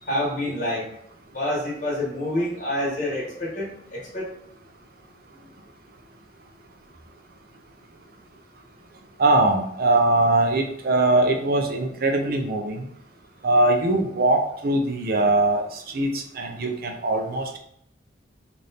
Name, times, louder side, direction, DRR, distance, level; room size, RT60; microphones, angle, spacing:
voice 1, 0.0-0.9 1.3-4.3, left 1 dB, 40° left, -5 dB, 1.5 m, -27 dB
voice 2, 9.2-12.9 13.4-17.6, right 2 dB, 50° right, 3 dB, 0.5 m, -21 dB
3.3 x 2.6 x 4.0 m, 0.70 s
head